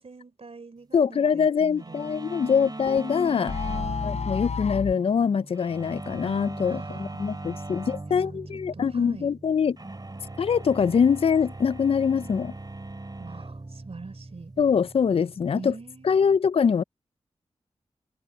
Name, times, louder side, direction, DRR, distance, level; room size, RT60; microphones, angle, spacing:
voice 1, 0.0-2.4 3.6-4.4 6.6-7.3 8.1-8.4 8.7-9.3 13.2-14.5 15.5-16.4, right 4 dB, 60° right, 3.5 m, -44 dB
voice 2, 0.9-3.5 4.0-9.8 10.4-12.5 14.6-15.7 16.0-16.8, left 6 dB, 55° left, 0.4 m, -23 dB
sound 1, 1.8-16.2, right 2 dB, 35° right, 2.9 m, -40 dB
sound 2, 2.9-5.0, left 5 dB, 80° left, 3.5 m, -31 dB
cardioid pair, 40°, 11 cm